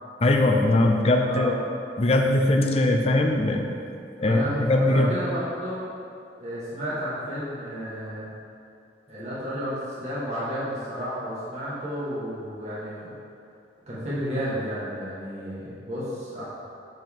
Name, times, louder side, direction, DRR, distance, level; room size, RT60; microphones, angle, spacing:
voice 1, 0.2-1.5 2.0-3.7 4.2-5.1, left 2 dB, 35° left, 2 dB, 0.4 m, -21 dB
voice 2, 1.2-1.6 4.2-5.8 6.4-8.3 9.1-13.1 13.9-16.4, equal, 40° right, -10 dB, 1.6 m, -32 dB
7.7 x 4.7 x 3.6 m, 2.6 s
head